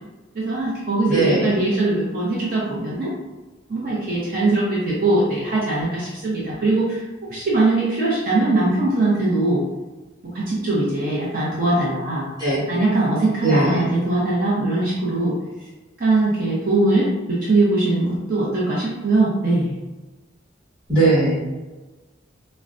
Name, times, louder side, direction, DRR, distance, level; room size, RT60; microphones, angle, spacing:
voice 1, 0.3-3.1 3.7-7.0 7.3-9.6 10.3-12.3 12.7-15.3 16.0-19.7, right 2 dB, 45° right, -6 dB, 0.7 m, -21 dB
voice 2, 1.1-1.6 12.4-12.6 13.4-13.8 20.9-21.4, right 2 dB, 20° right, -10 dB, 1.4 m, -19 dB
4.5 x 2.1 x 2.5 m, 1.2 s
head